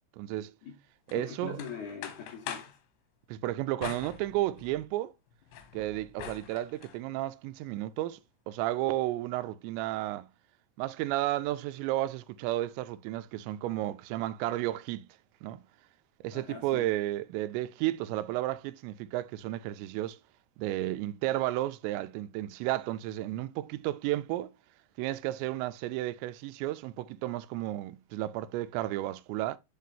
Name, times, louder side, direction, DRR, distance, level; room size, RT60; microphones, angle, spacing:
voice 1, 0.2-0.5 1.1-1.6 3.3-5.1 5.7-8.2 8.5-10.3 10.8-15.1 15.4-15.6 16.2-20.2 20.6-24.5 25.0-29.6, right 15 dB, 90° right, 2.8 m, -32 dB
sound 1, 1.1-2.8 3.8-4.9 5.3-7.0, left 9 dB, 85° left, 3.4 m, -44 dB
voice 2, 1.1-2.7 16.3-16.9, left 6 dB, 55° left, 2.4 m, -42 dB
11.0 x 4.2 x 2.7 m
omnidirectional pair, 5.0 m